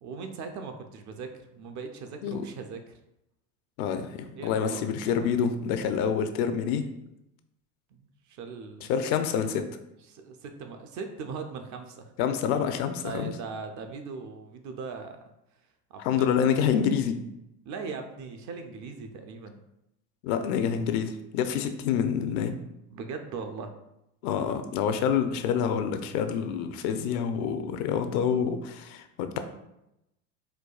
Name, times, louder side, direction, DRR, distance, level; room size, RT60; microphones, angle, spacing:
voice 1, 0.0-3.0 4.4-5.1 7.9-8.9 10.1-12.1 13.0-15.2 15.9-16.3 17.7-19.6 22.9-23.7, right 5 dB, 40° right, 6 dB, 0.4 m, -39 dB
voice 2, 3.8-6.9 8.9-9.6 12.2-13.3 16.0-17.2 20.2-22.6 24.2-29.4, left 7 dB, 65° left, 8 dB, 0.6 m, -27 dB
4.6 x 2.2 x 2.3 m, 0.87 s
hypercardioid pair, 85°, 48 cm